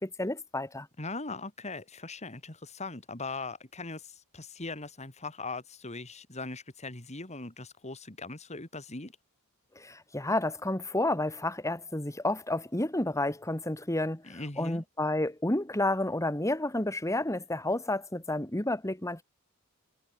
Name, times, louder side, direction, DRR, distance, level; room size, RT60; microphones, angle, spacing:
voice 1, 0.0-0.9 9.8-19.2, left 1 dB, 15° left, 2.1 m, -30 dB
voice 2, 1.0-9.1 14.2-14.8, left 3 dB, 30° left, 2.9 m, -40 dB
head